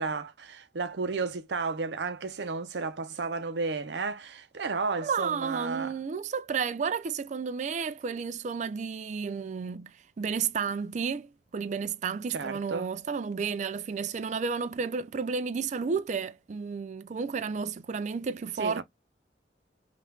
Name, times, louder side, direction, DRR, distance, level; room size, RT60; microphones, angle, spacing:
voice 1, 0.0-6.0 12.3-12.9 18.6-18.8, right 4 dB, 75° right, 0.7 m, -33 dB
voice 2, 5.0-9.9 10.2-18.8, right 5 dB, 45° right, 0.4 m, -32 dB
5.4 x 2.5 x 2.2 m
head